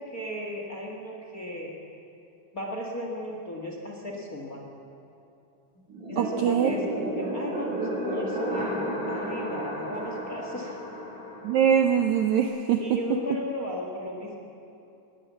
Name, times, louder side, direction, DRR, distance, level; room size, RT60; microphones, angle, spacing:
voice 1, 0.0-1.8 2.5-4.7 6.1-10.8 12.8-14.4, left 1 dB, 35° left, 0 dB, 1.6 m, -35 dB
sound 1, 5.9-12.4, right 1 dB, 55° right, 7.5 m, -33 dB
voice 2, 6.2-6.7 11.4-13.0, right 8 dB, 75° right, 5 dB, 1.8 m, -23 dB
20.0 x 17.5 x 7.5 m, 2.7 s
omnidirectional pair, 4.2 m